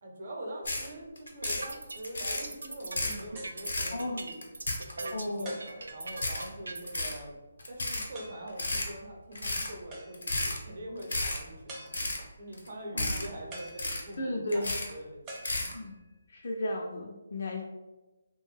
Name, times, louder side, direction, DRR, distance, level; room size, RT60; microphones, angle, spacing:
voice 1, 0.0-4.4 4.9-7.3 7.7-11.9 12.4-15.2, right 1 dB, 55° right, 0 dB, 0.7 m, -43 dB
sound 1, 0.6-0.9 1.2-1.7 2.0-2.4 2.8-3.2 3.6-3.9 4.3-5.1 5.5-5.6 6.1-6.5 6.8-7.2 7.6-8.1 8.5-8.9 9.3-9.7 10.1-10.6 11.0-11.4 11.8-12.2 12.5-12.7 13.0-13.3 13.6-14.1 14.5-14.9 15.3-15.7, left 2 dB, 80° left, 0.7 m, -32 dB
sound 2, 1.3-7.0, right 2 dB, 85° right, 0.3 m, -41 dB
sound 3, 1.4-1.8 2.5-2.6 3.4-3.7 5.4-6.1 8.1-8.6 9.9-10.4 11.7-12.4 13.5-14.4 15.3-16.1, right 1 dB, 20° right, 0.5 m, -46 dB
voice 2, 3.9-4.3 5.1-5.6 12.9-13.2 14.2-14.7 15.7-16.0 16.3-17.6, left 1 dB, 60° left, 0 dB, 0.4 m, -34 dB
2.6 x 2.2 x 3.1 m, 1.1 s
hypercardioid pair, 160°, 0 cm